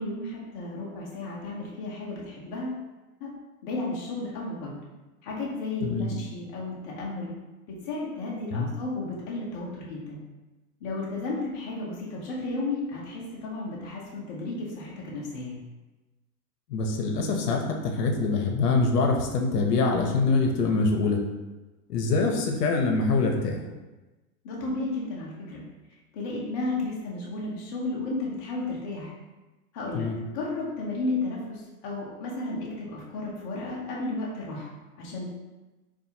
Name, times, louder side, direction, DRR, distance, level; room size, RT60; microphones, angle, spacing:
voice 1, 0.0-2.8 3.2-3.3 3.6-4.8 5.2-7.3 7.7-10.2 10.8-15.6 24.4-25.6 26.1-29.1 29.7-34.7 35.0-35.3, left 2 dB, 30° left, -4 dB, 0.6 m, -33 dB
voice 2, 16.7-21.2 21.9-23.6 29.9-30.2, left 3 dB, 75° left, 2 dB, 0.8 m, -24 dB
4.1 x 2.5 x 2.8 m, 1.1 s
supercardioid pair, 160°, 47 cm